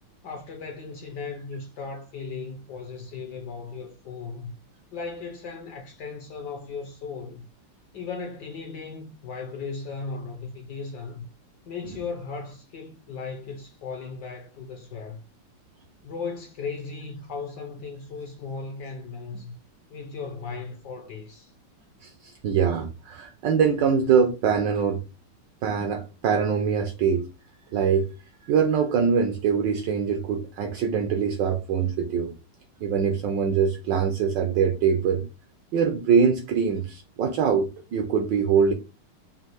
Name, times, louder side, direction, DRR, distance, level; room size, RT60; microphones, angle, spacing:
voice 1, 0.2-4.5 4.9-7.5 7.9-11.2 11.7-15.2 16.0-19.6 19.9-21.5, left 4 dB, 65° left, 1.1 m, -36 dB
voice 2, 22.0-25.0 25.6-27.3 27.7-28.1 28.5-32.3 32.8-35.2 35.7-38.7, right 6 dB, 75° right, 1.1 m, -23 dB
5.4 x 2.5 x 2.9 m
omnidirectional pair, 2.4 m